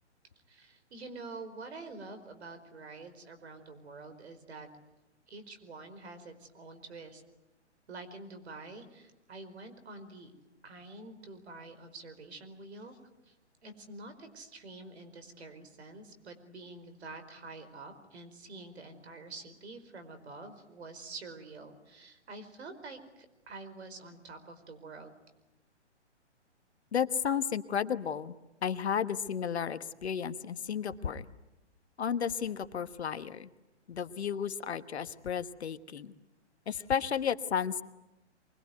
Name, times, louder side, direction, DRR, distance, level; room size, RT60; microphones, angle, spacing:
voice 1, 0.5-4.7 5.3-7.2 7.9-10.3 10.6-12.9 13.2-13.3 13.6-25.2, right 3 dB, 65° right, 9 dB, 4.8 m, -47 dB
voice 2, 26.9-28.3 28.6-31.3 32.0-33.5 33.9-36.1 36.7-37.8, left 7 dB, 65° left, 12 dB, 1.4 m, -33 dB
24.5 x 21.0 x 9.4 m, 0.97 s
hypercardioid pair, 140°, 35 cm